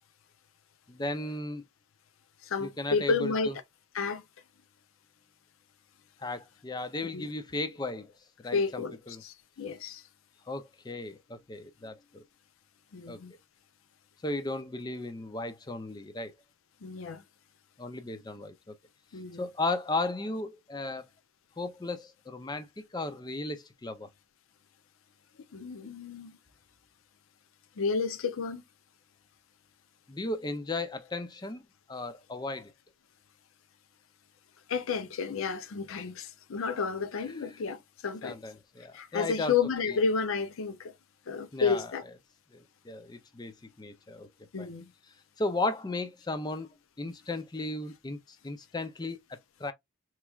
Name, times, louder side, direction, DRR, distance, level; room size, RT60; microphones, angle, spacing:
voice 1, 0.9-1.6 2.6-3.5 6.2-8.1 8.4-9.2 10.5-12.2 13.1-13.2 14.2-16.3 17.8-18.7 19.4-21.1 21.6-24.1 30.1-31.6 31.9-32.7 38.2-39.5 39.9-40.0 41.5-41.9 42.5-44.3 44.6-44.7 45.4-46.7 47.0-49.7, left 2 dB, 20° left, 0.4 m, -35 dB
voice 2, 2.4-3.5 3.9-4.2 7.1-7.3 8.5-9.0 9.2-10.0 12.9-13.3 16.8-17.2 19.1-19.5 25.5-26.4 27.8-28.6 34.7-38.4 38.9-40.9 41.3-42.0 44.5-44.9, left 5 dB, 75° left, 0.5 m, -31 dB
3.4 x 3.1 x 2.3 m
head